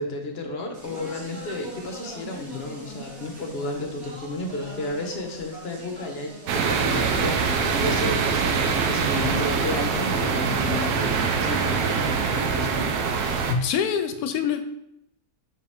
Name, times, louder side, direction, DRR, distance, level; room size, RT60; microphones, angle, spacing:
voice 1, 0.0-13.5, left 2 dB, 45° left, 3 dB, 1.0 m, -32 dB
Speech, 0.7-8.9, right 2 dB, 65° right, 1.9 m, -41 dB
sound 1, 6.5-13.5, right 5 dB, 80° right, 1.2 m, -24 dB
voice 2, 13.5-14.8, left 7 dB, 80° left, 8 dB, 1.1 m, -25 dB
6.1 x 4.7 x 3.5 m, 0.78 s
omnidirectional pair, 1.6 m